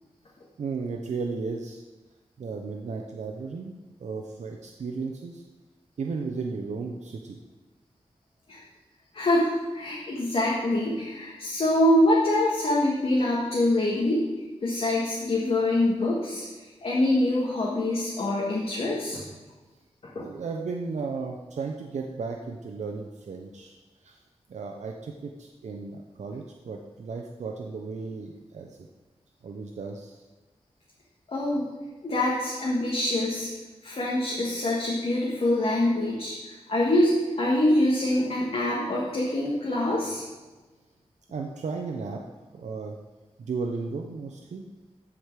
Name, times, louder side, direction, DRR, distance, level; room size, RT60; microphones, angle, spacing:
voice 1, 0.6-1.9 2.4-5.4 6.0-7.4 20.2-23.8 24.0-24.2 24.5-28.9 29.4-30.2 41.3-42.2 42.5-43.0 43.4-44.6, right 4 dB, 85° right, 2 dB, 0.7 m, -34 dB
voice 2, 9.1-14.2 14.6-16.4 16.8-19.2 20.1-20.3 31.3-31.7 32.0-33.5 33.8-40.2, left 1 dB, 55° left, -5 dB, 1.7 m, -25 dB
14.0 x 5.0 x 4.7 m, 1.2 s
wide cardioid pair, 135°, 12 cm